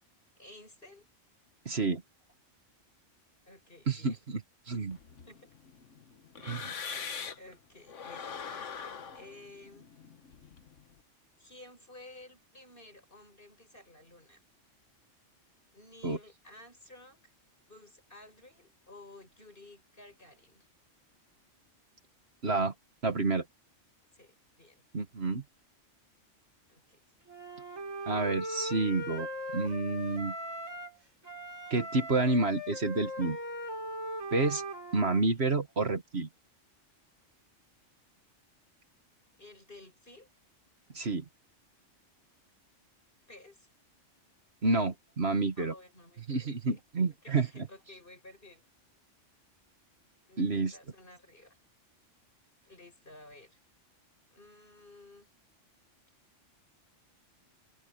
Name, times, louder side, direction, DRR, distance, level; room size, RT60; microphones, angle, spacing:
voice 1, 0.4-1.1 3.4-4.2 5.2-5.5 7.4-9.9 11.4-14.4 15.7-17.3 17.6-20.7 24.1-24.8 26.7-27.0 39.4-40.3 43.3-43.7 45.6-48.6 50.3-51.6 52.6-53.6 54.3-55.3, left 2 dB, 45° left, 7.6 m, -54 dB
voice 2, 1.7-2.0 3.9-4.1 4.7-5.0 6.4-6.7 16.0-16.2 22.4-22.7 23.0-23.4 24.9-25.4 28.1-29.3 29.5-30.3 31.7-33.4 34.3-34.6 34.9-36.3 40.9-41.3 44.6-45.7 46.3-47.7 50.4-50.7, right 3 dB, 55° right, 1.9 m, -29 dB
sound 1, 4.9-7.5 7.9-10.9, left 6 dB, 75° left, 1.5 m, -43 dB
Wind instrument woodwind instrument, 27.3-31.0 31.2-35.2, equal, 90° right, 6.9 m, -39 dB
omnidirectional pair, 1.3 m